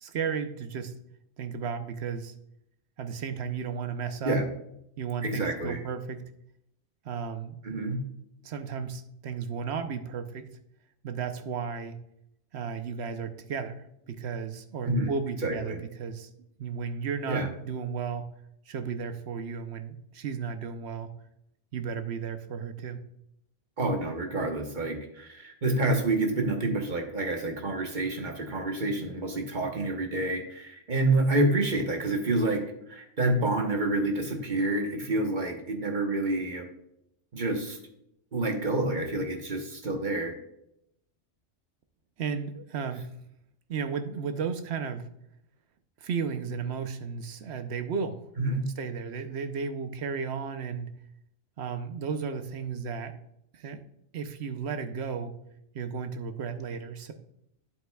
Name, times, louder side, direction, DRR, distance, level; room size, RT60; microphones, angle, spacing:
voice 1, 0.0-0.9 1.4-2.3 3.0-4.4 5.0-6.2 7.0-7.6 8.4-10.5 11.0-12.0 12.5-16.3 16.6-18.3 18.7-21.1 21.7-23.0 42.2-43.1 43.7-45.0 46.0-48.2 48.8-50.9 51.6-53.2 53.5-53.8 54.1-55.3 55.7-57.1, right 6 dB, 65° right, 8 dB, 0.9 m, -34 dB
voice 2, 5.2-5.8 7.6-8.0 14.8-15.1 15.4-15.8 17.3-17.5 23.8-32.6 32.9-36.7 37.3-37.8 38.3-40.3 48.4-48.7, right 2 dB, 40° right, 3 dB, 1.1 m, -28 dB
9.3 x 7.9 x 2.3 m, 0.78 s
omnidirectional pair, 1.3 m